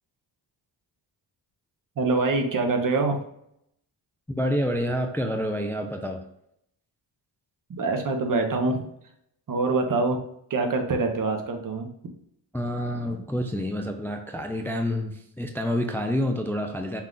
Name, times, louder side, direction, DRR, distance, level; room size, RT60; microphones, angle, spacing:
voice 1, 2.0-3.2 7.7-8.9 9.5-10.2 10.5-11.9, right 3 dB, 45° right, 4 dB, 0.9 m, -25 dB
voice 2, 4.3-6.2 12.5-17.0, equal, 5° left, 5 dB, 0.3 m, -28 dB
5.6 x 2.4 x 3.8 m, 0.74 s
cardioid pair, 95°, 45 cm